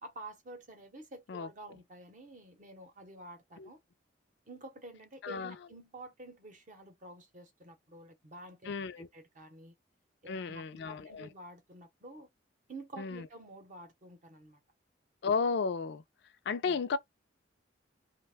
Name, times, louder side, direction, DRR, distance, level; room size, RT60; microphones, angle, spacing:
voice 1, 0.0-3.8 4.5-9.7 10.2-12.3 12.7-14.6 16.6-16.8, right 2 dB, 45° right, 0.8 m, -50 dB
voice 2, 5.2-5.6 8.6-9.1 10.3-11.3 13.0-13.3 15.2-16.0 16.5-17.0, left 5 dB, 65° left, 0.4 m, -33 dB
2.5 x 2.1 x 3.4 m
head